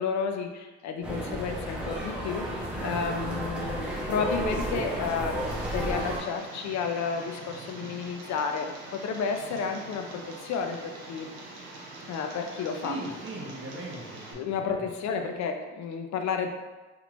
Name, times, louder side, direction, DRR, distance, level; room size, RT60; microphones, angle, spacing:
voice 1, 0.0-5.4 5.7-11.3 12.1-13.0 14.3-16.5, left 6 dB, 65° left, 5 dB, 0.4 m, -31 dB
sound 1, 1.0-6.2, right 1 dB, 5° right, 0.9 m, -32 dB
Tick, 5.4-14.3, right 2 dB, 90° right, 0.8 m, -44 dB
voice 2, 12.8-14.8, right 2 dB, 45° right, -2 dB, 0.8 m, -39 dB
3.5 x 3.0 x 2.4 m, 1.2 s
cardioid pair, 90°, 30 cm